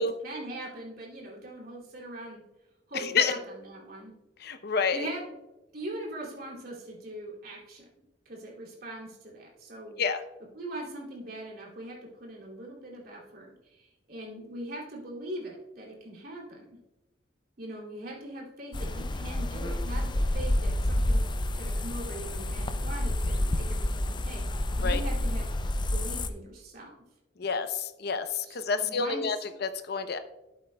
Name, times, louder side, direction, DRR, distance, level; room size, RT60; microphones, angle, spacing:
voice 1, 0.0-2.4 2.9-3.4 3.7-4.1 4.9-5.2 5.7-7.8 8.3-10.0 10.5-16.8 17.6-21.2 21.6-25.5 25.9-26.9 28.5-29.2, right 1 dB, 55° right, -3 dB, 2.8 m, -41 dB
voice 2, 2.9-3.4 4.4-5.1 10.0-10.2 24.8-25.0 27.4-30.2, left 5 dB, 60° left, 9 dB, 0.7 m, -29 dB
sound 1, 18.7-26.3, left 1 dB, 25° left, 0.5 m, -29 dB
12.0 x 8.5 x 2.3 m, 0.99 s
head